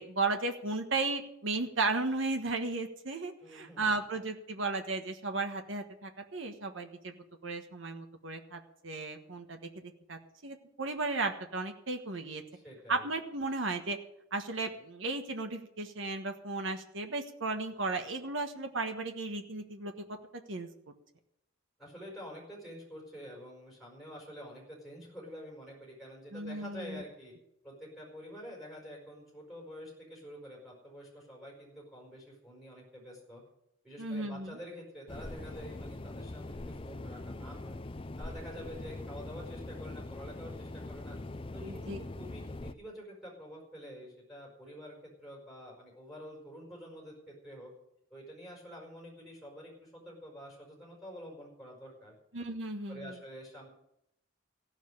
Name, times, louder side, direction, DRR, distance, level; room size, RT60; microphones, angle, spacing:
voice 1, 0.0-7.1 7.4-12.4 12.9-14.0 14.3-20.2 20.5-20.7 26.3-27.0 34.0-34.6 41.6-42.0 52.3-53.1, right 3 dB, 65° right, 5 dB, 1.4 m, -35 dB
voice 2, 3.4-3.9 12.5-13.0 21.8-27.3 27.6-33.4 33.8-37.8 38.2-41.2 41.5-47.7 48.1-52.1 52.9-53.7, equal, ahead, -2 dB, 4.9 m, -48 dB
sound 1, 35.1-42.7, left 2 dB, 25° left, 0.5 m, -42 dB
15.5 x 7.3 x 9.8 m, 0.79 s
head